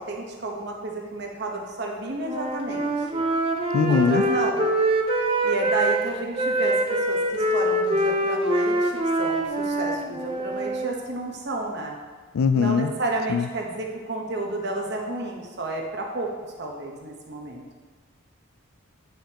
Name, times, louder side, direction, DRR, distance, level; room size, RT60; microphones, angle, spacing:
voice 1, 0.0-3.2 3.9-4.7 5.4-12.0 12.5-16.3 16.6-17.7, right 2 dB, 55° right, 0 dB, 1.0 m, -31 dB
Wind instrument woodwind instrument, 2.2-6.0 6.4-10.9, right 1 dB, 25° right, 0.5 m, -24 dB
voice 2, 3.7-4.2 12.3-12.9 13.3-13.5, left 5 dB, 80° left, 11 dB, 0.4 m, -21 dB
9.0 x 5.0 x 2.9 m, 1.5 s
head